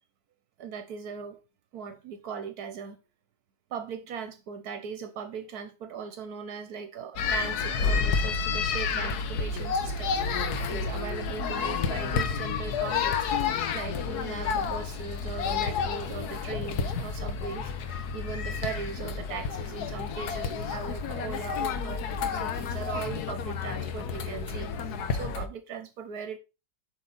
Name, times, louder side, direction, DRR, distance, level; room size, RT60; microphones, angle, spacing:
voice 1, 0.6-1.4 1.7-3.0 3.7-13.3 13.7-24.7 25.1-26.4, right 6 dB, 75° right, 1.3 m, -39 dB
sound 1, 7.2-25.5, left 5 dB, 80° left, 1.4 m, -30 dB
7.9 x 5.5 x 4.0 m
omnidirectional pair, 1.7 m